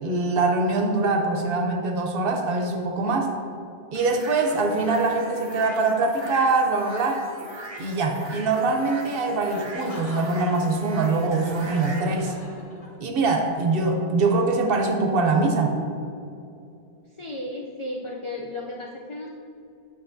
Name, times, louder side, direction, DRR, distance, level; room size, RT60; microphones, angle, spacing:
voice 1, 0.0-3.3 3.9-7.2 7.8-12.3 13.0-15.8, right 3 dB, 60° right, 3 dB, 0.8 m, -23 dB
sound 1, 3.9-12.0, right 3 dB, 40° right, 0.4 m, -40 dB
Laughter, 9.4-13.3, left 1 dB, 35° left, 1.0 m, -42 dB
voice 2, 17.2-19.3, left 1 dB, 55° left, -1 dB, 0.3 m, -34 dB
8.3 x 5.2 x 2.6 m, 2.6 s
omnidirectional pair, 1.1 m